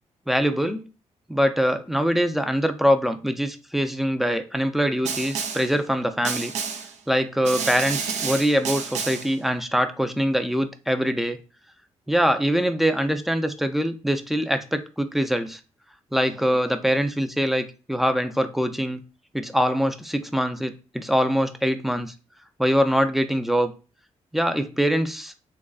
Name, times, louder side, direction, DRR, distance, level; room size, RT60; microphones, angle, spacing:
voice 1, 0.3-0.9 1.3-6.5 7.1-11.4 12.1-15.6 16.1-19.0 19.3-22.1 22.6-23.7 24.3-25.3, equal, ahead, 8 dB, 0.4 m, -23 dB
Snare drum, 5.1-5.8 6.3-7.0 7.5-9.4, right 6 dB, 85° right, 0.6 m, -30 dB
3.7 x 3.1 x 2.3 m, 0.32 s
cardioid pair, 110°, 12 cm